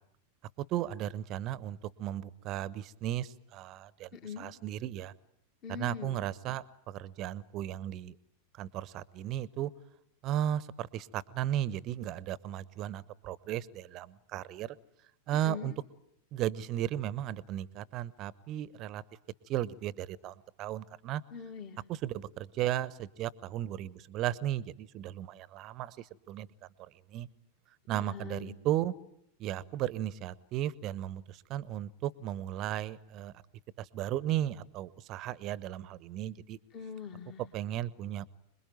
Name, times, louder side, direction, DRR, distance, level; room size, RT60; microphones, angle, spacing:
voice 1, 0.6-4.1 4.4-5.1 5.7-8.2 8.5-9.7 10.2-14.8 15.3-15.7 16.3-19.0 19.5-21.2 21.9-26.5 26.8-27.3 27.9-28.9 29.4-33.3 33.8-36.6 37.5-38.3, right 12 dB, 35° right, 20 dB, 1.0 m, -35 dB
voice 2, 4.1-4.5 5.6-6.3 15.4-15.8 21.3-21.8 27.9-28.6 36.7-37.4, left 6 dB, 35° left, 4 dB, 2.2 m, -42 dB
26.5 x 21.5 x 9.0 m, 0.75 s
figure-of-eight pair, 90°, 0 cm